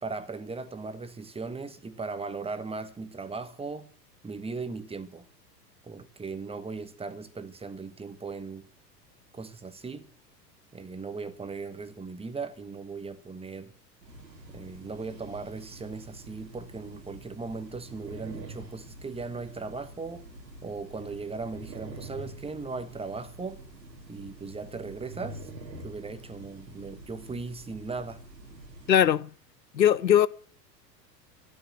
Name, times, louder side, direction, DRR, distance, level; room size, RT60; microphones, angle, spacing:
voice 1, 0.0-3.9 4.2-5.3 5.8-8.7 9.3-10.1 10.7-13.7 14.5-20.3 20.6-23.6 24.1-25.5 25.8-28.2, right 4 dB, 10° right, 1.5 m, -38 dB
sound 1, 14.0-29.1, right 2 dB, 85° right, 3.2 m, -46 dB
voice 2, 28.9-29.3 29.7-30.3, left 10 dB, 85° left, 0.7 m, -20 dB
13.5 x 10.5 x 7.5 m
figure-of-eight pair, 90°, 50 cm